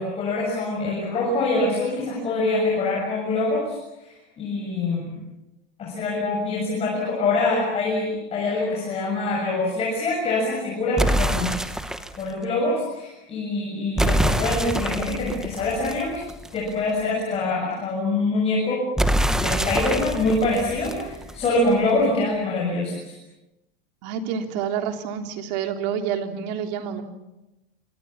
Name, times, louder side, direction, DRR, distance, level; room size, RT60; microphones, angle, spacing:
voice 1, 0.0-5.2 5.8-11.6 12.2-16.2 16.5-18.9 19.4-23.2, left 2 dB, 20° left, -2 dB, 7.2 m, -25 dB
sound 1, 11.0-12.2 14.0-16.7 19.0-21.7, right 1 dB, ahead, 0.9 m, -25 dB
voice 2, 24.0-27.0, right 8 dB, 45° right, 5 dB, 3.4 m, -28 dB
28.5 x 25.5 x 7.3 m, 0.97 s
supercardioid pair, 160°, 31 cm